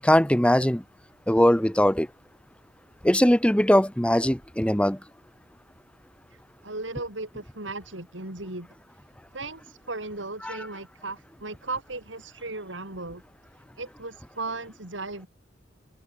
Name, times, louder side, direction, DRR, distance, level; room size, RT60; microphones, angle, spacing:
voice 1, 0.0-0.8 1.3-2.1 3.0-5.0 10.4-10.6, equal, 5° left, 1.7 m, -20 dB
voice 2, 6.3-8.7 9.3-13.2 13.8-15.3, right 3 dB, 90° right, 5.4 m, -36 dB
open air
head